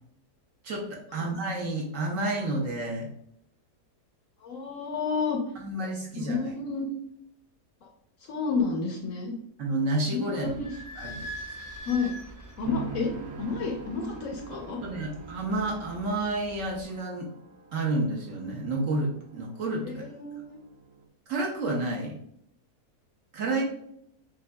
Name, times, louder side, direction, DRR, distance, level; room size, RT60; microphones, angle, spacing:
voice 1, 0.6-3.1 5.6-6.5 9.6-10.5 10.9-11.3 14.8-17.3 17.7-19.9 21.3-22.2 23.3-23.6, right 2 dB, 60° right, 0 dB, 1.0 m, -30 dB
voice 2, 4.4-5.4 6.1-7.0 7.8-7.9 8.2-9.3 10.1-10.7 11.9-12.1 12.6-13.1 13.4-14.8 19.8-20.6, left 4 dB, 65° left, 2 dB, 0.9 m, -30 dB
Idling / Squeak, 10.4-16.8, right 1 dB, 20° right, 0.5 m, -44 dB
sound 1, 12.6-21.0, right 4 dB, 90° right, 1.4 m, -45 dB
5.5 x 2.6 x 2.2 m, 0.71 s
omnidirectional pair, 1.7 m